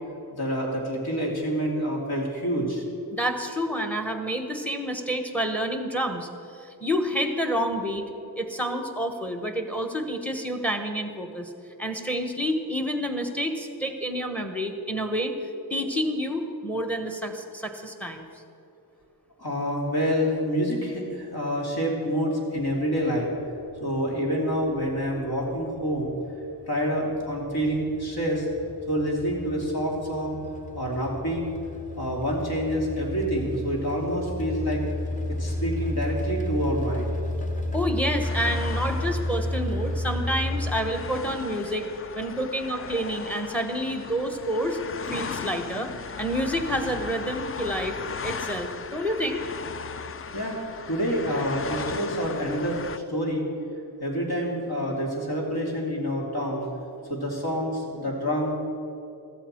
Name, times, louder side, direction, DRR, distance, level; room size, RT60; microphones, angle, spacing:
voice 1, 0.3-2.8 19.4-23.3 23.8-26.1 26.7-28.5 28.9-30.4 30.7-31.4 32.0-34.8 35.4-37.1 50.3-52.8 53.1-53.5 54.0-56.7 57.1-58.5, equal, 65° left, -2 dB, 3.0 m, -27 dB
voice 2, 3.1-8.0 8.4-11.5 11.8-15.3 15.7-18.3 37.7-41.9 42.1-44.8 45.1-45.9 46.2-47.9 48.2-49.4, equal, 5° left, 6 dB, 1.1 m, -28 dB
sound 1, 22.6-40.7, left 1 dB, 20° left, 1.2 m, -32 dB
sound 2, 38.2-53.0, left 6 dB, 35° left, 0.4 m, -37 dB
15.0 x 13.5 x 4.5 m, 2.8 s
wide cardioid pair, 155°, 40 cm